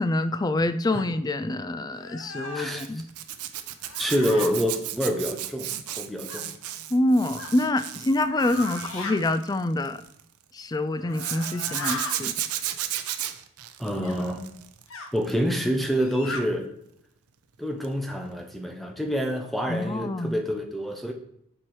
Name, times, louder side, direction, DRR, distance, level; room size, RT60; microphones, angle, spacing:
voice 1, 0.0-3.0 6.9-10.0 10.5-12.3 19.7-20.3, left 1 dB, 15° left, 12 dB, 0.3 m, -26 dB
sound 1, 0.9-1.1 1.9-2.7 3.8-4.5 6.3-6.4 7.4-7.5 8.3-9.2 10.9-12.2 14.0-14.2 14.9-15.1 15.9-16.4, left 3 dB, 60° left, 0.9 m, -37 dB
voice 2, 2.5-2.9 4.0-6.5 13.8-14.4 15.1-16.7 17.6-21.1, equal, ahead, 3 dB, 0.7 m, -27 dB
Zipper (clothing), 2.8-10.2 11.1-14.8 15.2-15.5 17.8-18.0 18.3-18.4, right 12 dB, 80° right, 0.6 m, -34 dB
7.5 x 4.5 x 4.8 m, 0.74 s
head